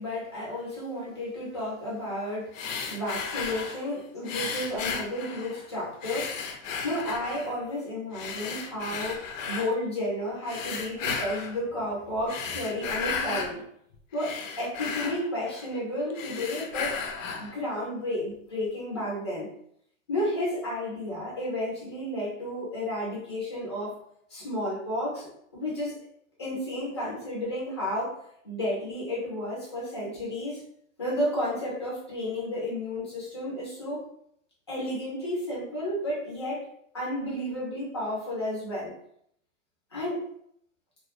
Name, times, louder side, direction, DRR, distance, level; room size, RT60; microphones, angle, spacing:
voice 1, 0.0-2.6 2.9-6.3 6.8-13.6 14.1-17.0 17.4-19.5 20.1-23.9 24.3-26.0 26.4-28.1 28.4-30.6 31.0-34.0 34.7-36.6 36.9-38.9 39.9-40.2, left 1 dB, 25° left, -6 dB, 0.4 m, -32 dB
sound 1, 2.5-3.8 4.3-5.7 6.0-7.6 8.1-9.7 10.4-11.6 12.2-13.6 13.9-15.8 16.1-17.6, left 5 dB, 70° left, 0.5 m, -34 dB
2.2 x 2.1 x 2.7 m, 0.69 s
hypercardioid pair, 170°, 40 cm